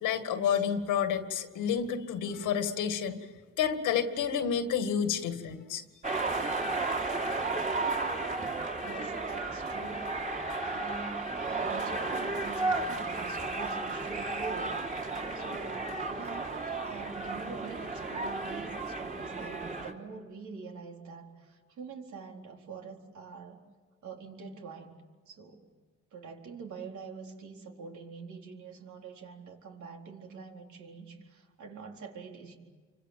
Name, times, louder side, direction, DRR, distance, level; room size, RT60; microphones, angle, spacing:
voice 1, 0.0-3.2 3.6-5.8, left 8 dB, 85° left, 8 dB, 2.1 m, -30 dB
sound 1, 6.0-19.9, right 3 dB, 25° right, 3.6 m, -33 dB
voice 2, 8.8-10.1 10.6-14.9 15.3-23.6 24.0-24.9 25.3-25.7 26.1-32.5, right 4 dB, 75° right, 1 dB, 4.2 m, -45 dB
28.0 x 25.5 x 7.6 m, 1.4 s
cardioid pair, 90°, 30 cm